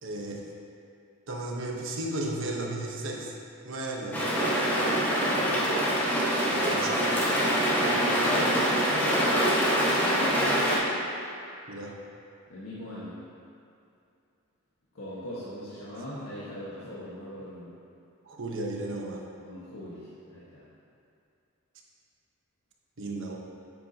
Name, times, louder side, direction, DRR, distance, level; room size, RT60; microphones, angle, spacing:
voice 1, 0.0-0.4 1.3-3.3 3.6-4.3 6.4-7.0 11.7-11.9 18.3-19.2 23.0-23.4, right 2 dB, 60° right, -1 dB, 1.1 m, -34 dB
sound 1, 4.1-10.8, equal, 10° left, 1.4 m, -25 dB
voice 2, 4.6-6.2 7.8-9.4 12.5-13.1 14.9-17.7 19.4-20.6, equal, 75° left, -9 dB, 1.5 m, -40 dB
10.5 x 8.3 x 2.9 m, 2.6 s
head